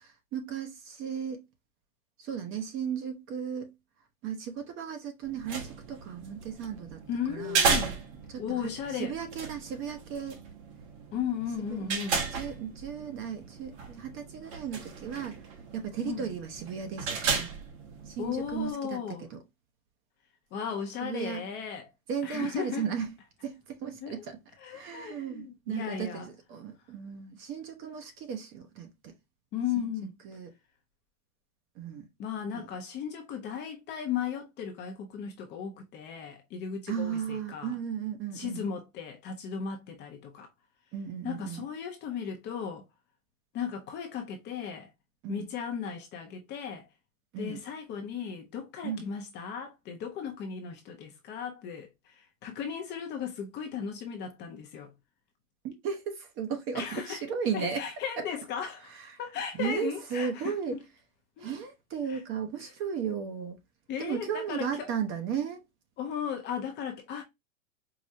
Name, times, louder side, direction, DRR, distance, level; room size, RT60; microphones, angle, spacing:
voice 1, 0.3-1.4 2.2-3.7 4.2-7.0 7.3-7.7 8.3-10.4 11.7-15.4 15.7-17.5 18.1-19.4 21.0-21.4 22.1-23.1 23.4-24.4 24.7-29.1 30.2-30.5 31.8-32.1 32.5-32.7 36.9-38.7 40.9-41.6 45.2-45.5 47.3-47.6 48.8-49.1 55.6-57.8 58.9-59.2 59.6-60.8 61.4-63.6 64.0-65.6, right 7 dB, 30° right, 0.7 m, -35 dB
sound 1, 5.2-18.7, right 5 dB, 50° right, 1.2 m, -35 dB
voice 2, 7.1-7.9 8.4-9.1 11.1-12.2 16.0-16.3 18.2-19.3 20.5-21.9 22.2-22.9 24.0-24.2 24.6-26.3 29.5-30.1 32.2-37.8 38.3-40.5 41.2-42.8 43.5-44.9 45.3-46.9 47.4-54.9 56.7-57.2 57.5-58.9 59.2-60.8 61.4-61.5 62.1-62.2 63.9-64.9 66.0-67.2, left 7 dB, 25° left, 0.6 m, -36 dB
4.8 x 2.1 x 2.7 m
hypercardioid pair, 135°, 43 cm